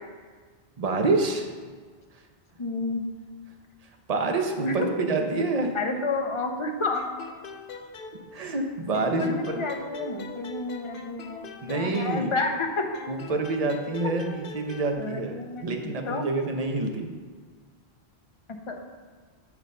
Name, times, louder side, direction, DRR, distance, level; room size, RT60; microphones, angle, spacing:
voice 1, 0.8-1.5 4.1-5.7 8.3-9.5 11.6-12.3 13.1-17.1, right 3 dB, 40° right, 3 dB, 0.8 m, -27 dB
voice 2, 2.6-3.0 4.6-4.7 5.5-7.1 9.2-12.9 14.0-14.1 15.0-16.2 18.7-18.8, left 3 dB, 30° left, 3 dB, 0.7 m, -30 dB
sound 1, 6.9-8.6 8.9-12.6 12.9-14.9, left 5 dB, 65° left, 0.7 m, -42 dB
8.2 x 4.0 x 5.3 m, 1.5 s
omnidirectional pair, 1.1 m